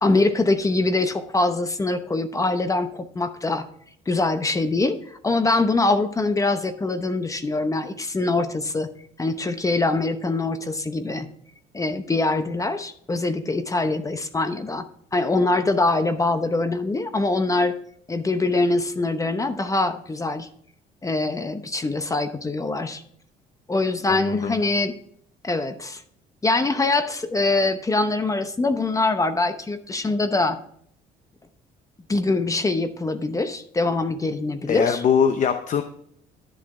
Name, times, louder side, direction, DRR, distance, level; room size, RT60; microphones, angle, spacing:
voice 1, 0.0-3.7 4.1-8.9 9.2-11.3 11.7-17.8 18.1-20.5 21.0-23.0 23.7-24.9 25.4-26.0 26.4-30.6 32.1-35.0, left 2 dB, 20° left, 10 dB, 0.8 m, -23 dB
voice 2, 24.1-24.6 34.7-35.8, left 7 dB, 50° left, 8 dB, 0.8 m, -22 dB
11.5 x 7.6 x 3.7 m, 0.65 s
cardioid pair, 110°, 17 cm